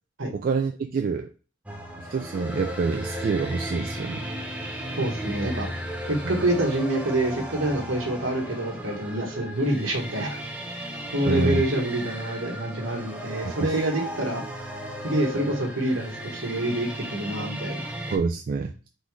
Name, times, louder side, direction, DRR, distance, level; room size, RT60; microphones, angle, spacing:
voice 1, 0.3-1.3 2.0-4.3 6.2-6.4 11.2-11.6 13.4-13.7 18.1-18.7, right 4 dB, 45° right, 4 dB, 0.3 m, -27 dB
sound 1, 1.7-18.2, equal, 5° right, 0.6 m, -35 dB
voice 2, 5.0-5.7 6.1-10.4 11.1-14.4 15.0-17.9, right 1 dB, 65° right, 1 dB, 1.3 m, -26 dB
3.8 x 3.6 x 3.1 m, 0.35 s
head